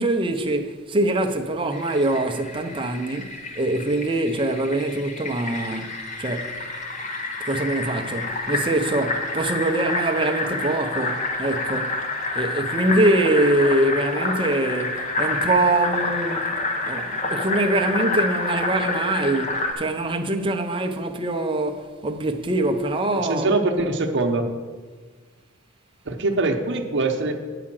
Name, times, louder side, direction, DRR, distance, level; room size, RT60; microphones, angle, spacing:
voice 1, 0.0-6.6 7.5-12.0 12.3-16.5 16.9-23.5, right 2 dB, 25° right, 0.6 m, -24 dB
Fill (with liquid), 1.7-19.7, left 2 dB, 35° left, 1.0 m, -28 dB
voice 2, 23.3-24.5 26.1-27.3, right 2 dB, 55° right, 0.8 m, -23 dB
8.6 x 4.9 x 7.4 m
head